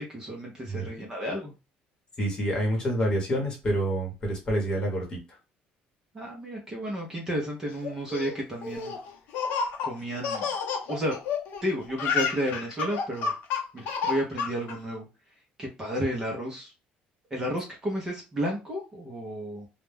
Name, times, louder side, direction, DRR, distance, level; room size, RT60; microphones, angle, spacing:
voice 1, 0.0-1.5 6.1-9.0 9.8-10.4 10.9-11.2 11.6-13.3 13.7-15.1 15.6-16.7 17.3-19.7, equal, 15° right, -1 dB, 0.6 m, -32 dB
voice 2, 0.7-1.0 2.2-5.2, right 1 dB, 25° left, 0 dB, 1.0 m, -27 dB
Laughter, 7.8-11.6 11.9-14.7, left 5 dB, 65° left, 0.6 m, -30 dB
2.2 x 2.1 x 3.2 m, 0.28 s
cardioid pair, 165°, 3 cm